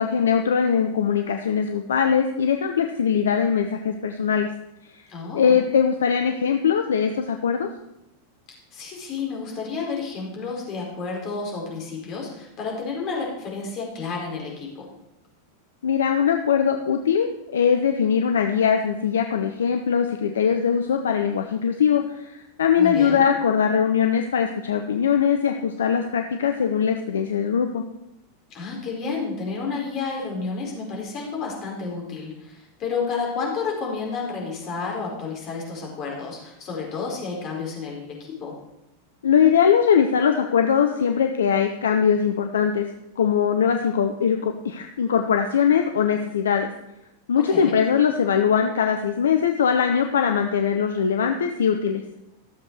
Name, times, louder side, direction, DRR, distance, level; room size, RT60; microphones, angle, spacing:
voice 1, 0.0-4.5 5.3-7.7 15.8-27.8 39.2-42.9 43.2-46.7 47.3-52.0, left 7 dB, 65° left, 5 dB, 0.8 m, -21 dB
voice 2, 5.1-5.6 8.7-14.9 22.8-23.2 28.5-38.5 47.5-47.8, left 4 dB, 35° left, -2 dB, 4.8 m, -31 dB
13.5 x 7.5 x 6.4 m, 0.86 s
figure-of-eight pair, 90°, 0 cm